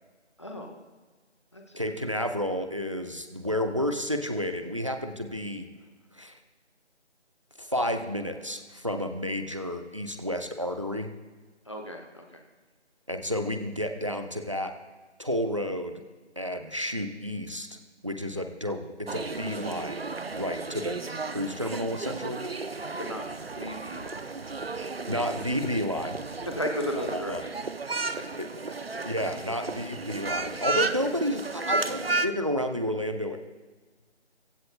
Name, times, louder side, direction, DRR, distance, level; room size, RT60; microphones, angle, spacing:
voice 1, 0.4-0.8 1.5-1.8 11.6-12.4 23.0-23.2 23.5-24.3 26.4-27.5 28.1-28.2 31.0-31.1, equal, 25° left, 2 dB, 1.0 m, -35 dB
voice 2, 1.8-5.7 6.1-6.3 7.6-11.1 13.1-14.7 15.2-16.0 16.4-17.7 18.0-21.0 21.3-22.4 25.1-26.2 27.1-27.4 28.4-28.5 29.0-33.4, equal, 25° right, 7 dB, 0.8 m, -31 dB
sound 1, 19.1-32.3, right 3 dB, 60° right, 0.7 m, -33 dB
25.0 x 16.0 x 2.2 m, 1.3 s
figure-of-eight pair, 175°, 34 cm